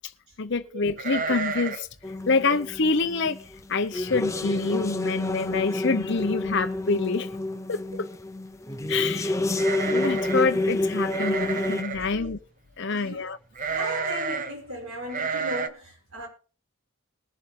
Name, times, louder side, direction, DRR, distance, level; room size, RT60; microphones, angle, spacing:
voice 1, 0.4-1.9 2.3-3.4 3.7-7.3 7.7-8.1 8.9-9.4 9.9-12.4 12.8-13.4, left 4 dB, 55° left, 0.7 m, -26 dB
sound 1, 1.0-1.9 2.2-2.3 2.8-3.0 3.6-3.7 4.0-4.5 4.8-4.9 6.0-6.1 6.4-6.9 9.5-10.5 11.1-12.1 13.6-14.5 15.1-15.7, right 5 dB, 35° right, 0.8 m, -31 dB
sound 2, 2.0-3.6 3.8-11.8, left 2 dB, 15° left, 0.6 m, -28 dB
voice 2, 13.7-16.3, equal, 75° right, 6.3 m, -36 dB
20.0 x 7.2 x 3.7 m
head